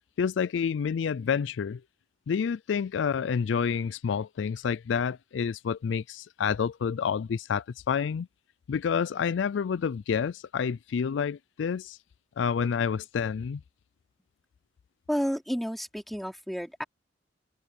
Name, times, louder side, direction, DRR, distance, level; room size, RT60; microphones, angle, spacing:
voice 1, 0.2-1.8 2.3-8.3 8.7-12.0 12.4-13.6, left 6 dB, 70° left, 0.4 m, -29 dB
voice 2, 15.1-16.8, equal, ahead, 3.0 m, -31 dB
head